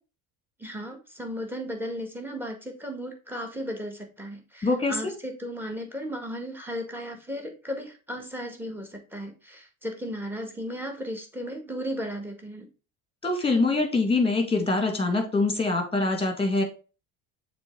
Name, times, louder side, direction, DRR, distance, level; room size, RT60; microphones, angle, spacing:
voice 1, 0.6-12.7, equal, 5° right, 4 dB, 1.8 m, -35 dB
voice 2, 4.6-5.0 13.2-16.6, left 3 dB, 10° left, 4 dB, 2.2 m, -24 dB
6.9 x 3.4 x 4.6 m, 0.33 s
hypercardioid pair, 60°, 48 cm